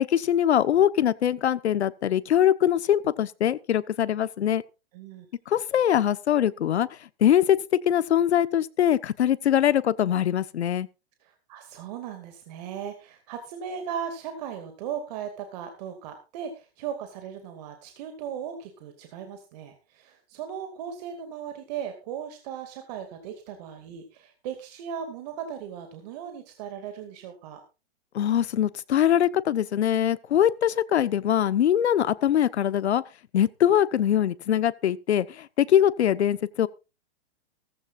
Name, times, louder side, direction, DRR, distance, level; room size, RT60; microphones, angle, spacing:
voice 1, 0.0-4.6 5.5-6.9 7.2-7.6 7.8-10.9 28.1-33.0 33.3-36.7, left 10 dB, 85° left, 1.1 m, -22 dB
voice 2, 4.9-5.3 11.2-27.6, right 8 dB, 40° right, 2.3 m, -37 dB
17.0 x 14.5 x 2.5 m
hypercardioid pair, 160°, 32 cm